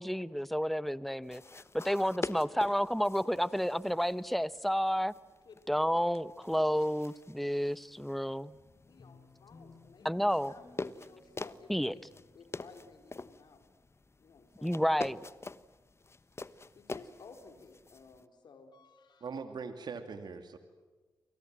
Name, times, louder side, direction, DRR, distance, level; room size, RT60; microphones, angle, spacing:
voice 1, 0.0-1.4 1.7-5.1 5.7-8.5 10.0-10.5 11.7-11.9 14.6-15.2, equal, ahead, 1.1 m, -30 dB
sound 1, 1.2-18.3, left 3 dB, 35° left, 1.2 m, -46 dB
voice 2, 8.9-12.0 12.3-13.6 14.2-14.8 16.7-19.4, left 5 dB, 70° left, 4.3 m, -56 dB
sound 2, 9.0-13.6, left 3 dB, 55° left, 6.0 m, -61 dB
voice 3, 19.2-20.6, right 5 dB, 70° right, 2.5 m, -41 dB
29.5 x 24.0 x 7.7 m
cardioid pair, 50°, 8 cm